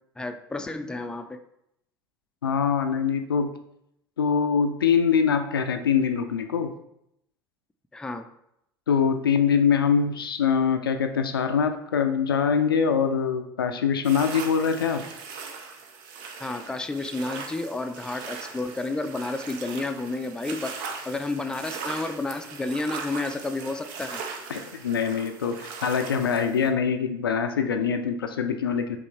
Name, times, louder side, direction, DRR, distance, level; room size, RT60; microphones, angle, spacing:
voice 1, 0.2-1.4 7.9-8.3 16.4-24.2, left 2 dB, 5° left, 7 dB, 0.4 m, -31 dB
voice 2, 2.4-3.5 4.2-6.7 8.9-15.1 24.5-29.0, left 6 dB, 85° left, 7 dB, 0.4 m, -24 dB
sound 1, 14.0-26.7, right 5 dB, 60° right, 0.6 m, -39 dB
5.2 x 3.2 x 3.1 m, 0.78 s
figure-of-eight pair, 70°, 12 cm